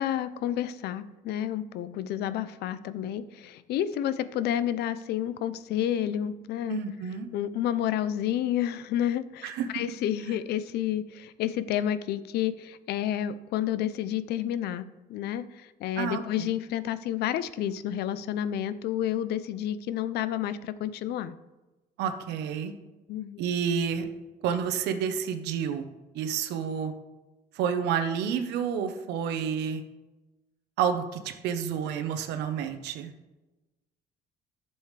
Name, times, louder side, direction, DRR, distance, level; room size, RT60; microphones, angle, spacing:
voice 1, 0.0-6.8 7.3-21.3 23.1-23.4, left 11 dB, 75° left, 15 dB, 0.5 m, -30 dB
voice 2, 6.7-7.3 9.4-9.7 16.0-16.2 22.0-22.7 23.4-24.0 24.4-25.9 26.1-26.9 27.5-29.8 30.8-33.1, right 7 dB, 85° right, 8 dB, 0.9 m, -29 dB
11.5 x 7.0 x 3.3 m, 1.1 s
cardioid pair, 110°, 17 cm